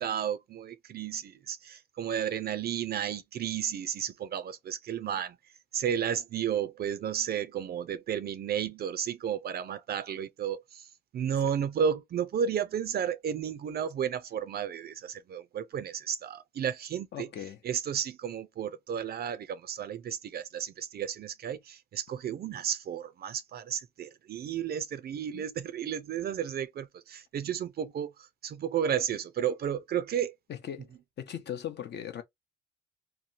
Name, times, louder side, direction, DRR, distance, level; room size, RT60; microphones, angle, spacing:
voice 1, 0.0-5.4 5.7-10.9 11.1-17.3 17.6-28.1 28.4-30.3, right 8 dB, 50° right, 0.4 m, -33 dB
voice 2, 17.1-17.6 25.3-25.4 30.5-30.9 31.2-32.2, left 10 dB, 60° left, 0.7 m, -38 dB
2.9 x 2.2 x 2.6 m
cardioid pair, 90°, 20 cm